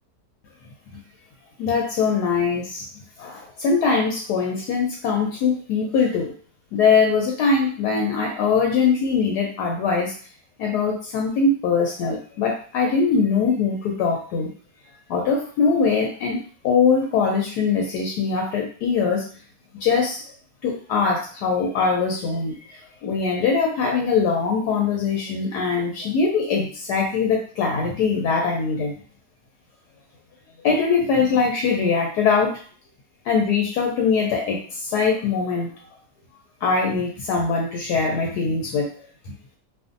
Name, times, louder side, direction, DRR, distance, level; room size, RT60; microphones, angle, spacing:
voice 1, 1.6-2.9 3.2-6.3 6.7-10.1 10.6-14.5 15.1-16.4 16.6-19.2 19.7-20.2 20.6-22.7 23.0-28.9 30.6-32.6 33.2-35.8 36.6-38.9, left 5 dB, 75° left, 0 dB, 1.1 m, -22 dB
2.5 x 2.5 x 2.5 m, 0.43 s
omnidirectional pair, 1.8 m